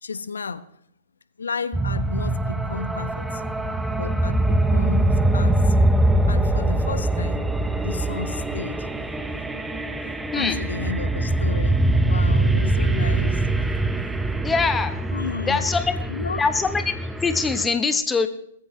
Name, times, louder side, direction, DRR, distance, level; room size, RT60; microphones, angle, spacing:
voice 1, 0.0-0.6 1.4-3.4 4.0-5.8 6.3-7.4 7.8-8.9 10.0-13.6 14.0-14.1 15.1-15.7 16.1-16.4, left 5 dB, 70° left, 14 dB, 1.0 m, -33 dB
sound 1, 1.7-17.7, right 1 dB, 5° right, 0.9 m, -23 dB
voice 2, 14.4-15.0 15.5-15.9 16.4-16.8 17.2-18.3, left 4 dB, 10° left, 10 dB, 1.3 m, -22 dB
20.0 x 14.5 x 3.3 m, 0.70 s
figure-of-eight pair, 115°, 0 cm